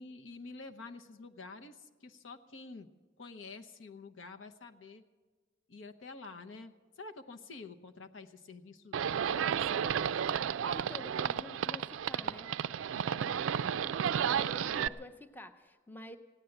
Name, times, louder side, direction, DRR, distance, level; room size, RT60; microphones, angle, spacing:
voice 1, 0.0-2.9 3.2-5.0 5.7-10.3, left 3 dB, 80° left, 7 dB, 0.8 m, -49 dB
Livestock farm animals working animals, 8.9-14.9, right 8 dB, 80° right, 0.4 m, -32 dB
voice 2, 10.7-12.5 14.3-16.2, left 1 dB, 10° left, 8 dB, 0.6 m, -49 dB
16.5 x 9.9 x 7.8 m, 1.4 s
head